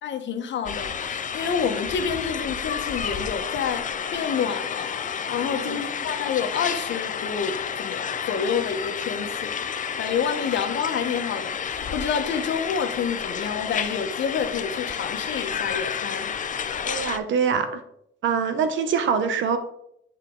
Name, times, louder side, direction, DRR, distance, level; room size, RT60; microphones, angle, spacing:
voice 1, 0.0-16.3, left 6 dB, 65° left, 6 dB, 1.2 m, -29 dB
sound 1, 0.7-17.2, left 7 dB, 40° left, 0.6 m, -30 dB
voice 2, 5.5-5.8 16.8-17.8 18.2-19.6, right 6 dB, 75° right, 9 dB, 1.1 m, -24 dB
10.5 x 4.5 x 3.9 m, 0.74 s
cardioid pair, 90°, 20 cm